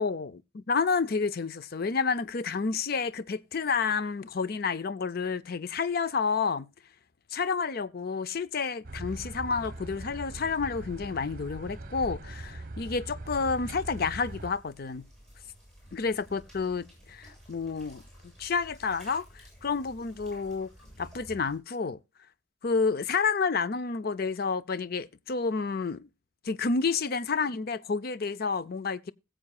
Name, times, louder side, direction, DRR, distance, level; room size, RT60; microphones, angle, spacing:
voice 1, 0.0-0.3 0.7-6.7 7.3-15.0 15.9-18.0 18.4-19.2 19.6-20.7 21.0-22.0 22.6-26.0 26.4-29.1, left 5 dB, 50° left, 0.5 m, -30 dB
sound 1, 8.8-14.5, right 2 dB, 45° right, 0.9 m, -41 dB
sound 2, 13.7-21.6, equal, 5° left, 7.7 m, -53 dB
20.5 x 7.6 x 2.3 m
head